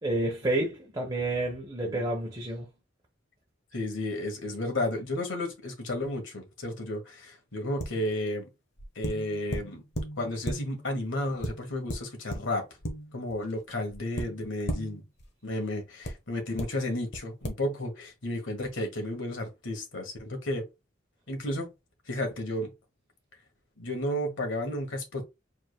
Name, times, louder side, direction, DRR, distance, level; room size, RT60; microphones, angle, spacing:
voice 1, 0.0-2.7, right 2 dB, 25° right, 1.0 m, -29 dB
voice 2, 3.7-8.5 8.9-9.8 10.2-12.6 13.1-15.0 15.4-20.7 21.3-21.7 22.1-22.7 23.8-25.2, left 1 dB, 80° left, 1.5 m, -32 dB
sound 1, 7.8-8.2 8.8-11.0 11.4-13.5 13.9-15.3 16.0-16.1 16.6-16.7 17.1-17.2 17.4-17.5, equal, 60° left, 1.2 m, -36 dB
4.9 x 3.6 x 2.2 m
head